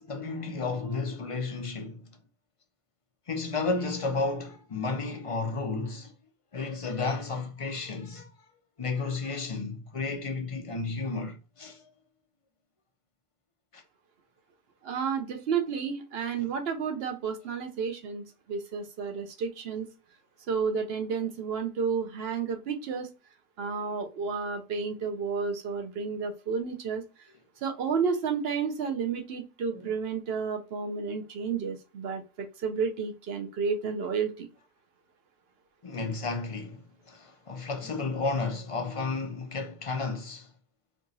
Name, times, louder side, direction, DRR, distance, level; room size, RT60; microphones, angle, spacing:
voice 1, 0.0-2.1 3.3-6.1 6.5-8.3 8.8-11.8 13.7-13.8 16.4-16.5 27.3-27.4 29.7-29.9 35.8-40.5, left 3 dB, 40° left, 0.5 m, -32 dB
voice 2, 14.8-18.2 18.5-19.9 20.5-23.1 23.6-27.0 27.6-34.5, right 6 dB, 60° right, 0.9 m, -31 dB
4.5 x 3.0 x 2.7 m
omnidirectional pair, 1.3 m